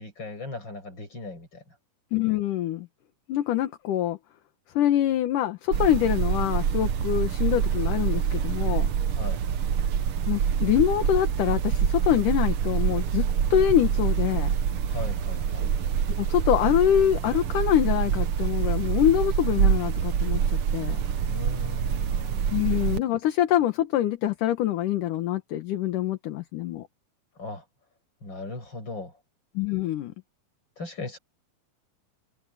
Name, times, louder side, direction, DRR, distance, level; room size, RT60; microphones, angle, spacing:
voice 1, 0.0-1.6 9.1-9.4 14.8-15.7 21.3-22.5 27.4-27.6 28.2-29.1 30.8-31.2, left 2 dB, 30° left, 8.5 m, -37 dB
voice 2, 2.1-2.9 3.3-4.2 4.8-8.9 10.3-14.5 16.2-21.0 22.5-26.8 29.5-30.1, left 11 dB, 65° left, 2.7 m, -25 dB
sound 1, 5.7-23.0, right 8 dB, 75° right, 1.3 m, -26 dB
omnidirectional pair, 4.2 m